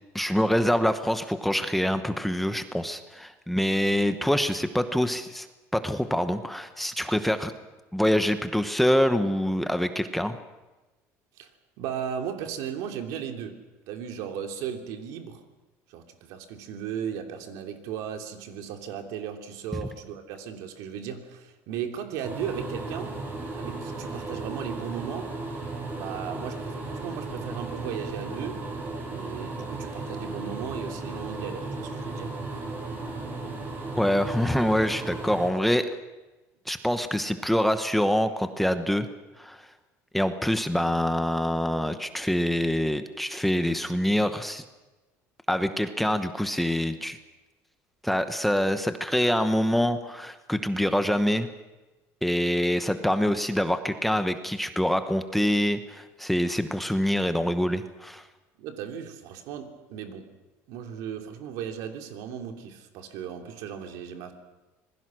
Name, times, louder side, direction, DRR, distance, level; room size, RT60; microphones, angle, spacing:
voice 1, 0.1-5.5 5.7-7.5 7.9-10.4 34.0-35.9 36.7-39.1 39.4-39.6 40.1-44.6 45.5-47.2 48.0-51.5 52.2-58.2, equal, ahead, 9 dB, 1.0 m, -25 dB
voice 2, 11.8-13.6 13.9-15.4 15.9-23.2 23.5-25.3 25.9-28.6 29.1-32.6 58.6-60.3 60.7-64.3, right 8 dB, 75° right, 5 dB, 3.0 m, -36 dB
sound 1, 22.2-35.5, right 3 dB, 35° right, 7.1 m, -35 dB
26.5 x 21.0 x 6.3 m, 1.1 s
cardioid pair, 150°, 6 cm